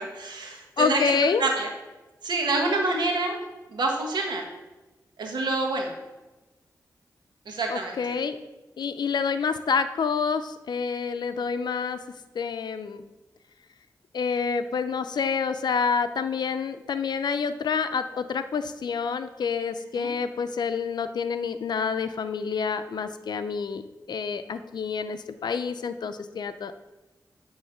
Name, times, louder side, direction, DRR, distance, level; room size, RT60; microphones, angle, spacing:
voice 1, 0.0-1.0 1.4-1.7 2.2-3.4 3.7-4.4 5.2-5.9 7.5-8.0 20.0-20.1, right 2 dB, 85° right, 1 dB, 1.5 m, -27 dB
voice 2, 0.8-1.5 7.7-8.4 8.8-12.0 12.3-13.0 14.1-23.8 24.1-26.9, left 5 dB, 75° left, 10 dB, 0.5 m, -28 dB
9.1 x 3.1 x 6.6 m, 1.1 s
cardioid pair, 60°, 7 cm